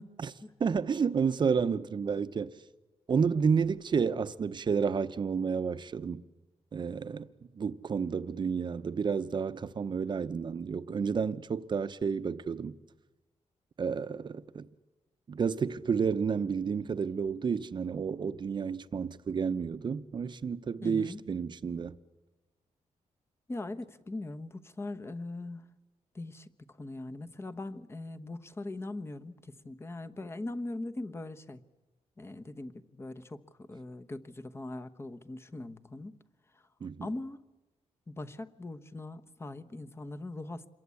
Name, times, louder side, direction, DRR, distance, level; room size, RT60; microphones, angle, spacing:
voice 1, 0.6-2.5 3.1-6.2 6.7-7.3 7.5-12.7 13.8-14.7 15.3-22.0 36.8-37.1, right 6 dB, 40° right, 0.8 m, -30 dB
voice 2, 20.8-21.2 23.5-25.7 26.1-26.5 26.8-31.6 32.2-36.1 37.0-37.4 38.1-40.7, left 2 dB, 20° left, 1.0 m, -41 dB
27.5 x 22.5 x 8.4 m
wide cardioid pair, 130°, 12 cm